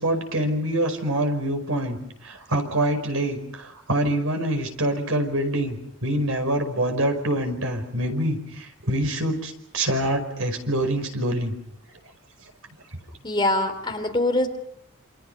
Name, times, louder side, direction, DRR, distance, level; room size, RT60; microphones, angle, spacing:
voice 1, 0.0-2.0 2.2-11.5, right 1 dB, 75° right, 6 dB, 5.2 m, -25 dB
voice 2, 13.2-14.5, left 1 dB, 20° left, 5 dB, 3.3 m, -23 dB
28.5 x 27.5 x 5.5 m, 0.74 s
head